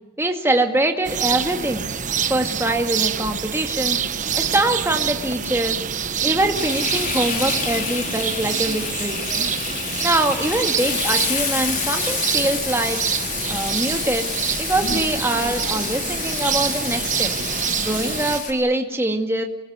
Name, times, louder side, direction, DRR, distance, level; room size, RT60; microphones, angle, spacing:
voice 1, 0.2-1.8 2.3-5.8 6.2-9.2 10.0-13.0 13.5-14.3 14.6-17.3 17.8-19.4, right 1 dB, 10° right, 4 dB, 2.2 m, -23 dB
sound 1, 1.0-18.4, right 7 dB, 35° right, 1.2 m, -26 dB
Frying (food), 6.6-18.5, left 5 dB, 40° left, 4.5 m, -28 dB
27.5 x 22.0 x 9.6 m, 1.1 s
head